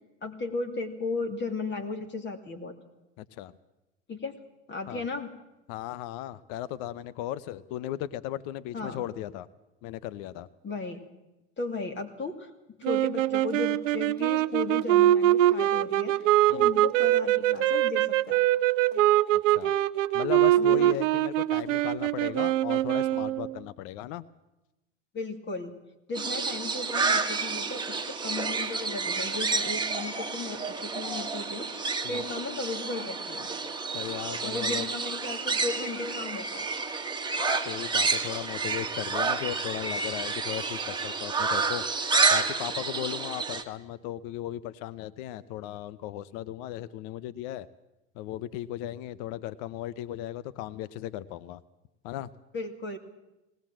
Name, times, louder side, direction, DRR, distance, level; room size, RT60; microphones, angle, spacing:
voice 1, 0.2-2.8 4.1-4.4 4.7-5.3 8.7-9.0 10.6-11.0 11.6-12.5 12.8-18.5 20.6-20.9 25.1-25.7 26.1-31.7 32.1-33.5 34.4-36.7 52.5-53.0, left 3 dB, 30° left, 6 dB, 2.5 m, -35 dB
voice 2, 3.2-3.5 4.9-5.0 5.7-9.5 9.8-10.5 16.5-16.7 19.5-19.7 20.1-24.3 32.0-32.2 33.9-34.9 37.6-41.8 42.3-47.7 48.1-51.6 52.0-52.3, left 13 dB, 60° left, 17 dB, 0.8 m, -36 dB
sound 1, 12.8-23.6, right 14 dB, 85° right, 0.7 m, -23 dB
sound 2, 26.1-43.6, right 4 dB, 10° right, 1.7 m, -30 dB
19.5 x 18.5 x 7.5 m, 0.96 s
hypercardioid pair, 95°, 37 cm